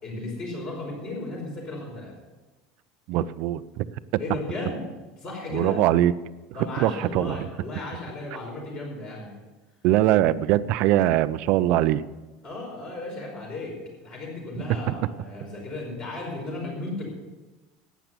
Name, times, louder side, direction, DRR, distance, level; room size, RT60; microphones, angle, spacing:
voice 1, 0.0-2.1 4.2-4.8 5.2-5.8 6.5-9.4 12.4-17.1, left 2 dB, 30° left, -1 dB, 4.9 m, -35 dB
voice 2, 3.1-3.9 5.5-6.1 6.8-7.5 9.8-12.0, right 14 dB, 45° right, 15 dB, 0.5 m, -22 dB
12.0 x 9.2 x 6.9 m, 1.2 s
cardioid pair, 170°, 3 cm